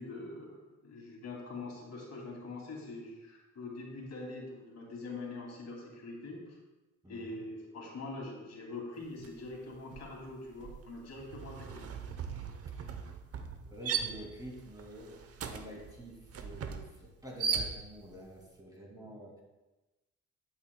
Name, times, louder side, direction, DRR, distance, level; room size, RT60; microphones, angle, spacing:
voice 1, 0.0-6.6 7.1-11.8, left 2 dB, 60° left, -1 dB, 2.5 m, -44 dB
voice 2, 7.0-7.4 12.8-12.9 13.6-19.4, right 1 dB, 10° right, -2 dB, 2.3 m, -48 dB
sound 1, 9.2-9.5 9.8-18.2, right 6 dB, 50° right, 0.8 m, -39 dB
11.5 x 8.1 x 2.2 m, 1.1 s
cardioid pair, 90°, 30 cm